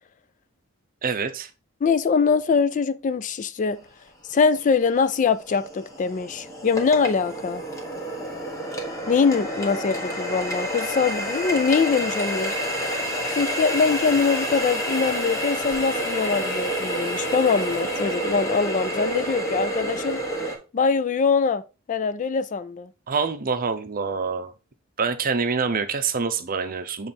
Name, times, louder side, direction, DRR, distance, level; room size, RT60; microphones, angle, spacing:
voice 1, 1.0-1.5 23.1-24.5 25.0-27.1, right 5 dB, 45° right, 0.7 m, -26 dB
voice 2, 1.8-3.8 4.3-7.6 9.1-12.5 13.3-20.2 20.7-21.6 21.9-22.9, left 5 dB, 35° left, 0.3 m, -23 dB
Water tap faucet, 4.1-4.2 4.7-20.6, right 1 dB, 15° left, 1.4 m, -29 dB
7.0 x 3.2 x 4.3 m
head